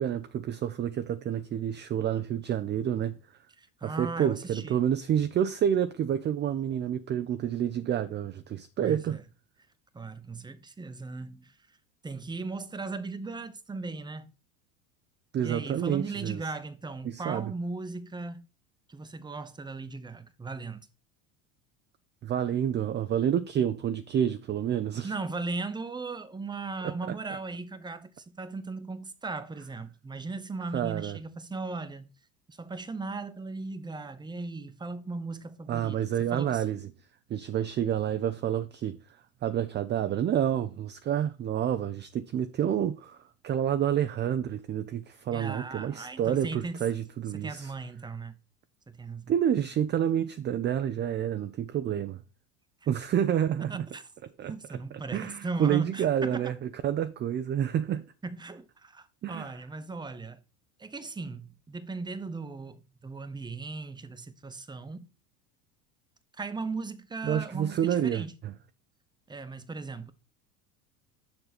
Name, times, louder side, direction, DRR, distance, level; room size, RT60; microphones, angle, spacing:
voice 1, 0.0-3.2 3.8-9.2 15.3-16.4 17.0-17.5 22.2-25.1 26.8-27.0 30.7-31.2 35.7-36.8 37.3-39.0 39.4-43.2 43.4-47.7 49.3-52.2 52.9-53.9 54.4-54.5 55.1-56.5 56.8-58.0 59.2-59.5 67.2-68.5, right 9 dB, 25° right, 0.5 m, -28 dB
voice 2, 3.6-4.9 8.8-9.2 9.9-11.8 12.0-14.3 15.4-18.4 18.9-20.9 25.0-32.1 32.5-36.6 45.3-46.8 47.3-48.4 48.9-49.3 53.7-54.0 54.4-56.5 58.2-60.4 60.8-65.1 66.3-68.3 69.3-70.1, right 3 dB, 10° right, 0.8 m, -37 dB
7.0 x 5.6 x 4.2 m
hypercardioid pair, 90°, 41 cm